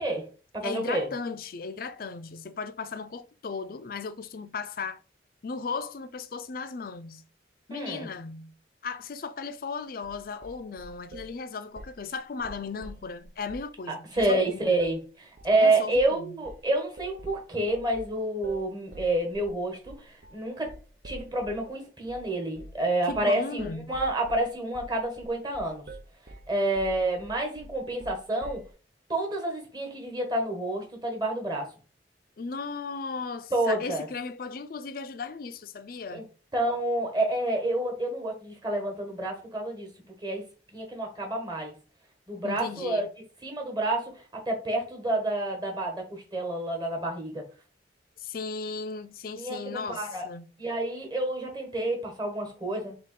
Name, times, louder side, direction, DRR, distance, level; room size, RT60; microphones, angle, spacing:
voice 1, 0.0-1.1 7.7-8.1 13.9-20.7 21.0-25.8 26.5-28.6 29.1-31.7 33.5-34.1 36.1-36.2 36.5-39.9 40.2-40.4 40.7-41.7 42.3-43.1 43.4-47.4 49.4-50.3 50.6-53.0, right 2 dB, 25° right, 1.3 m, -29 dB
voice 2, 0.6-5.0 5.4-7.2 7.7-8.5 8.8-14.8 15.6-16.4 23.1-23.9 32.4-36.3 42.4-43.1 48.2-50.5, left 4 dB, 50° left, 0.4 m, -36 dB
sound 1, 10.0-11.3 11.8-12.0 12.4-13.7 14.2-14.4 14.8-15.0 15.4-15.6 15.9-16.2 16.5-21.7 22.1-22.3 22.6-22.8 23.1-23.3 23.6-28.7, right 1 dB, 55° right, 0.7 m, -46 dB
3.7 x 2.9 x 4.1 m
head